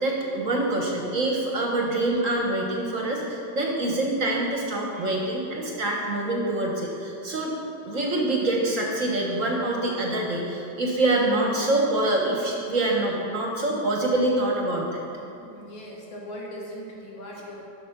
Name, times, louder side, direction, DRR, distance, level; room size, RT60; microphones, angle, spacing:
voice 1, 0.0-7.5 7.8-15.0, right 2 dB, 50° right, -1 dB, 1.3 m, -25 dB
voice 2, 15.4-17.7, equal, 80° left, -3 dB, 2.4 m, -39 dB
11.0 x 6.4 x 5.9 m, 2.8 s
omnidirectional pair, 2.1 m